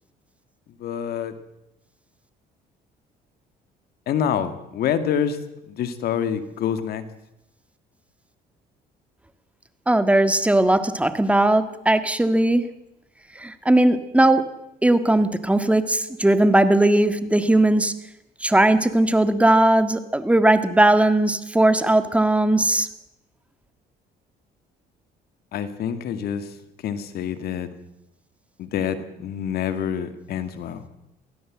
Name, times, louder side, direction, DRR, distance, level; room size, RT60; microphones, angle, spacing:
voice 1, 0.8-1.3 4.1-5.4 5.7-7.0 25.5-27.7 28.6-30.9, left 8 dB, 70° left, 10 dB, 2.2 m, -27 dB
voice 2, 9.9-12.7 13.3-14.4 14.8-17.9 18.4-22.9, right 1 dB, 5° right, 10 dB, 1.6 m, -18 dB
23.5 x 16.0 x 7.7 m, 0.86 s
cardioid pair, 110°, 17 cm